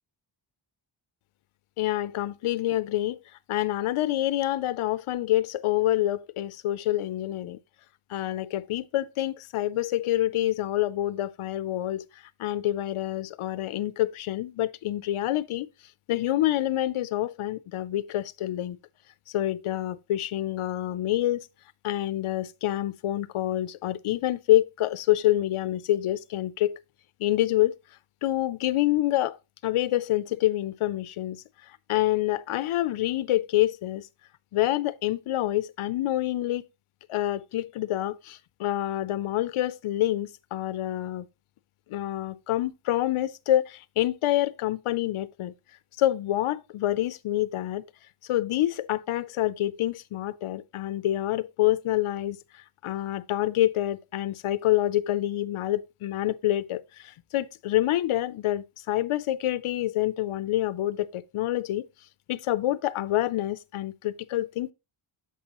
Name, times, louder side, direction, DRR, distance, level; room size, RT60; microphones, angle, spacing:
voice 1, 1.8-3.2 3.5-7.6 8.1-12.1 12.4-15.7 16.1-18.8 19.3-21.5 21.8-26.8 27.2-27.8 28.2-29.4 29.6-34.1 34.5-36.6 37.1-41.3 41.9-45.5 46.0-47.9 48.3-61.9 62.3-64.7, left 14 dB, 80° left, 0.6 m, -27 dB
8.4 x 6.6 x 2.9 m
wide cardioid pair, 145°, 49 cm